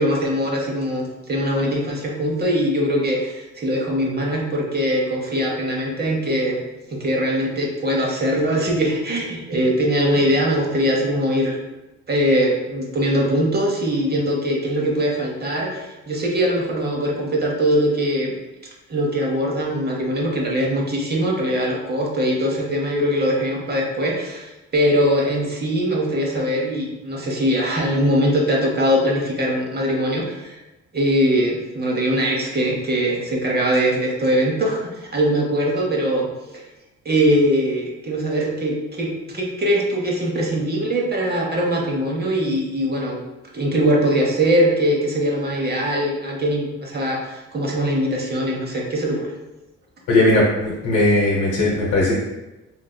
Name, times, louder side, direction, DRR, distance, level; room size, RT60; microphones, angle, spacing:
voice 1, 0.0-6.6 6.9-11.6 12.1-18.4 18.9-30.6 30.9-36.6 37.0-43.2 43.5-49.3, equal, 35° right, -1 dB, 0.8 m, -21 dB
voice 2, 50.1-52.1, left 2 dB, 85° left, -5 dB, 0.8 m, -18 dB
3.7 x 2.6 x 2.2 m, 1.0 s
cardioid pair, 90°, 30 cm